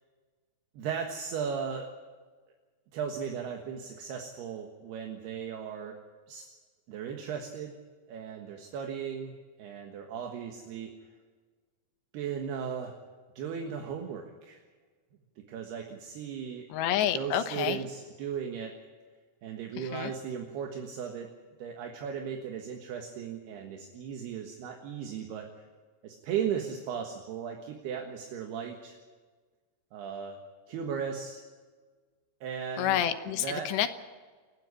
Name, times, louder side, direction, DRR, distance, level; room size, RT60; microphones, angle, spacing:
voice 1, 0.7-1.9 2.9-5.9 6.3-6.5 6.9-7.8 8.1-9.3 9.6-10.9 12.1-12.9 13.4-14.6 15.4-16.7 17.1-18.7 19.4-21.3 21.6-25.5 26.0-29.0 29.9-30.4 30.7-31.4 32.4-33.0 33.4-33.7, right 7 dB, 75° right, 3 dB, 3.4 m, -36 dB
voice 2, 16.7-17.8 19.8-20.1 32.8-33.9, left 11 dB, 85° left, 8 dB, 3.3 m, -29 dB
28.5 x 10.5 x 10.0 m, 1.5 s
omnidirectional pair, 4.9 m